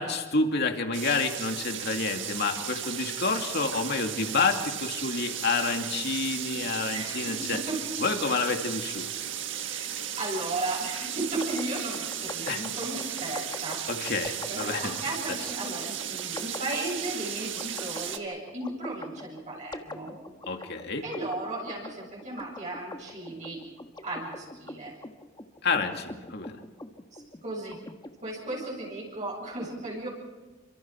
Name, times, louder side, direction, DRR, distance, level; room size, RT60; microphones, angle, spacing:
voice 1, 0.0-7.6 8.0-9.1 12.5-12.6 13.9-14.9 20.5-21.0 25.6-26.6, left 4 dB, 55° left, 4 dB, 2.5 m, -29 dB
sound 1, 0.9-18.2, right 9 dB, 65° right, 1.7 m, -35 dB
voice 2, 6.9-7.8 9.7-14.1 14.5-20.1 21.0-23.6 24.0-24.9 27.1-27.8 28.2-30.1, right 2 dB, 40° right, -4 dB, 8.0 m, -35 dB
sound 2, 11.4-28.1, left 2 dB, 20° left, 1.4 m, -43 dB
29.5 x 26.0 x 4.7 m, 1.3 s
head